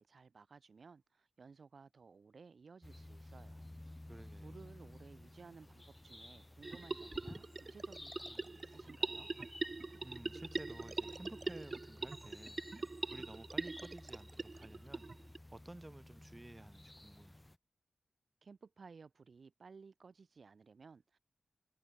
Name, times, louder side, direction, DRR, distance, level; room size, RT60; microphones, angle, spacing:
voice 1, 0.0-3.7 4.4-9.3 18.4-21.2, right 5 dB, 60° right, 3.9 m, -58 dB
sound 1, 2.8-17.6, left 1 dB, 15° left, 1.9 m, -54 dB
voice 2, 4.1-4.6 10.0-12.8 13.1-17.4, right 1 dB, 20° right, 1.7 m, -54 dB
sound 2, 6.6-15.4, right 3 dB, 40° right, 1.4 m, -42 dB
wide cardioid pair, 80°, 0 cm